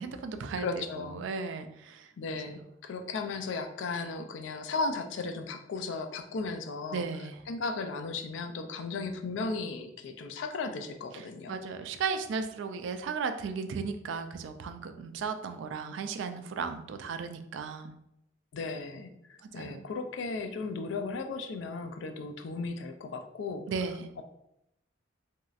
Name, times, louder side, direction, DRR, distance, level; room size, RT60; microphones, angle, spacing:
voice 1, 0.0-2.4 6.9-7.4 11.1-17.9 19.6-19.8 23.7-24.1, right 5 dB, 70° right, 8 dB, 0.3 m, -36 dB
voice 2, 0.6-1.2 2.2-7.1 7.5-11.6 18.5-19.1 19.5-23.7, left 3 dB, 70° left, 6 dB, 0.4 m, -35 dB
3.0 x 2.7 x 2.4 m, 0.81 s
head